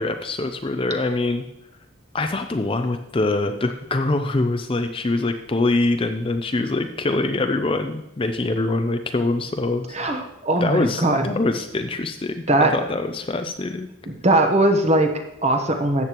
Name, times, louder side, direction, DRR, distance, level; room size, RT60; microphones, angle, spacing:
voice 1, 0.0-1.4 2.1-10.0 10.6-12.4 12.7-13.9, left 2 dB, 25° left, 6 dB, 0.4 m, -24 dB
voice 2, 9.9-11.3 12.5-12.7 14.1-16.1, right 1 dB, 30° right, 5 dB, 1.0 m, -20 dB
13.0 x 8.5 x 3.0 m, 0.87 s
head